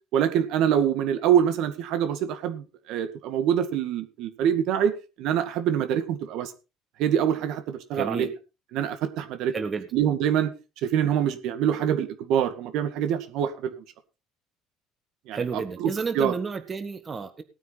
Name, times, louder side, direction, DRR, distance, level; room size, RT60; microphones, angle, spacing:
voice 1, 0.1-4.9 5.2-6.5 7.0-8.3 8.7-9.5 9.9-10.5 10.8-13.7 15.3-15.4 15.8-16.3, right 9 dB, 70° right, 9 dB, 2.1 m, -25 dB
voice 2, 7.9-8.3 9.5-9.9 15.3-17.4, right 5 dB, 25° right, 9 dB, 1.7 m, -31 dB
18.0 x 9.3 x 4.2 m, 0.31 s
cardioid pair, 120°, 0 cm